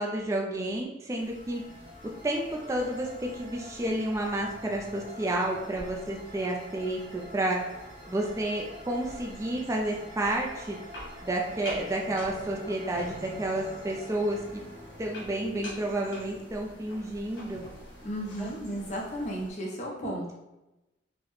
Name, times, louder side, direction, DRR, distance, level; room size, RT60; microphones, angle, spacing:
voice 1, 0.0-1.6 2.2-2.4 2.7-7.6 8.1-10.8 11.2-14.4 15.0-17.6 18.4-18.5 20.0-20.1, right 1 dB, 15° right, 0 dB, 0.3 m, -30 dB
sound 1, 1.2-19.5, left 1 dB, 70° left, 1.2 m, -47 dB
sound 2, 1.3-16.1, left 1 dB, 45° right, 0.7 m, -48 dB
voice 2, 18.0-20.3, equal, 40° left, -2 dB, 0.7 m, -34 dB
3.9 x 2.1 x 3.0 m, 0.98 s
head